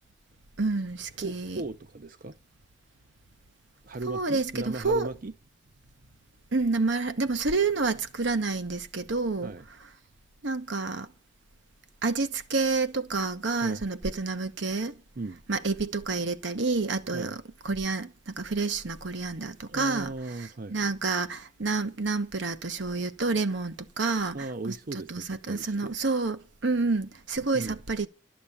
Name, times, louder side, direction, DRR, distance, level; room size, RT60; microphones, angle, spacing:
voice 1, 0.6-1.6 4.1-5.1 6.5-9.5 10.4-11.1 12.0-14.9 15.5-20.1 20.7-24.4 24.6-28.1, right 3 dB, 65° right, 1.0 m, -29 dB
voice 2, 1.2-2.4 3.8-5.3 9.4-9.7 13.6-13.8 15.2-15.4 17.1-17.4 19.7-21.0 24.3-26.0 27.5-27.8, right 2 dB, 45° right, 0.6 m, -37 dB
12.0 x 7.1 x 8.5 m
head